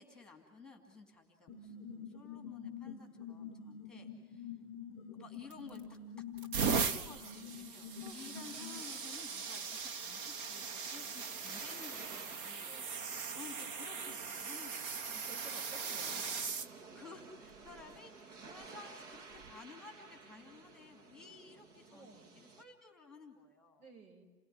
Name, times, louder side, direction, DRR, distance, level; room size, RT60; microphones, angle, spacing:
voice 1, 0.0-4.5 5.1-6.0 6.6-12.8 13.3-15.2 15.8-16.2 16.9-23.8, left 4 dB, ahead, 4 dB, 2.6 m, -54 dB
sound 1, 1.5-8.8, left 7 dB, 20° left, 0.8 m, -47 dB
sound 2, 5.5-5.9 6.4-16.7 17.5-17.8 19.3-19.5, right 5 dB, 35° right, 1.1 m, -39 dB
sound 3, 10.4-22.6, right 4 dB, 55° right, 2.3 m, -55 dB
voice 2, 15.1-16.3 16.6-16.7 21.9-22.3 23.8-24.2, right 3 dB, 80° right, 3 dB, 7.4 m, -55 dB
29.0 x 17.5 x 9.8 m, 1.2 s
hypercardioid pair, 150°, 44 cm